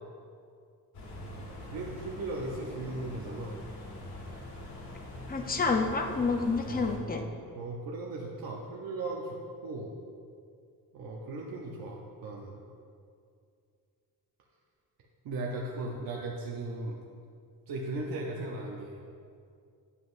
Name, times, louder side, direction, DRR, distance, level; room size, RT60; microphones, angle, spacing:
sound 1, 0.9-7.0, left 1 dB, 90° left, 1.9 m, -43 dB
voice 1, 1.6-3.6 6.7-9.4 9.6-9.9 10.9-12.6 15.2-16.9 17.7-19.0, right 2 dB, 70° right, -2 dB, 0.8 m, -37 dB
voice 2, 5.3-7.2, left 4 dB, 25° left, 4 dB, 0.6 m, -29 dB
9.8 x 7.4 x 2.6 m, 2.3 s
cardioid pair, 140°, 37 cm